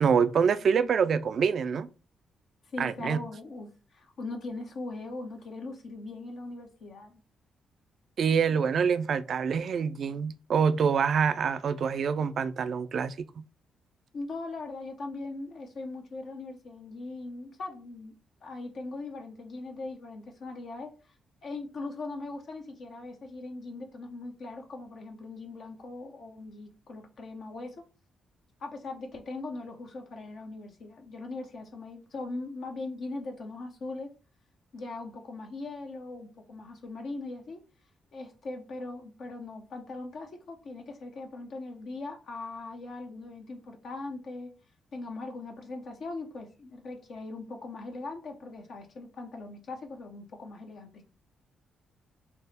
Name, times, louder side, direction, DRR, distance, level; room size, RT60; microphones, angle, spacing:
voice 1, 0.0-1.9 2.8-3.2 8.2-13.4, right 6 dB, 60° right, 0.3 m, -26 dB
voice 2, 2.7-7.2 14.1-18.1 18.4-20.9 21.4-27.8 28.6-34.1 34.7-37.6 38.1-44.5 44.9-51.1, left 3 dB, 65° left, 0.7 m, -40 dB
3.4 x 2.0 x 4.1 m
supercardioid pair, 55°, 0 cm